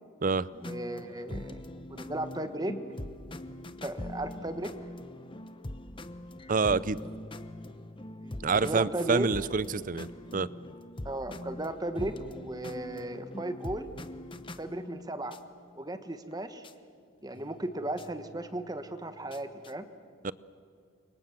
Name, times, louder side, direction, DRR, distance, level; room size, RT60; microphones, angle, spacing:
sound 1, 0.5-15.4 16.3-16.4 16.6-16.7 17.3-19.7, left 1 dB, 25° left, 0.9 m, -43 dB
voice 1, 0.6-1.6 1.9-2.7 3.8-4.7 8.2-9.3 11.0-13.9 14.6-15.4 15.7-16.6 17.2-19.9, right 1 dB, 20° right, 9 dB, 1.3 m, -35 dB
voice 2, 6.5-7.0 8.4-10.5 20.2-20.3, right 4 dB, 40° right, 19 dB, 0.6 m, -27 dB
29.5 x 25.0 x 7.3 m, 2.3 s
head